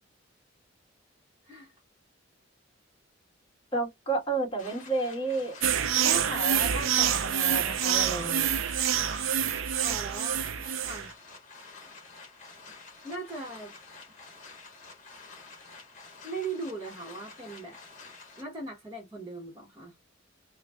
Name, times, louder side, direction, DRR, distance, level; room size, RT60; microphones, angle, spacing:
voice 1, 3.7-5.6 6.0-8.5, right 2 dB, 25° left, 2.2 m, -32 dB
sound 1, 4.6-18.4, left 4 dB, 40° left, 1.7 m, -49 dB
sound 2, 5.6-11.1, right 9 dB, 80° right, 0.5 m, -27 dB
voice 2, 9.8-10.5 10.8-11.1 13.0-13.7 16.2-17.8 18.4-19.9, right 3 dB, 15° right, 1.1 m, -39 dB
3.8 x 2.3 x 3.5 m
head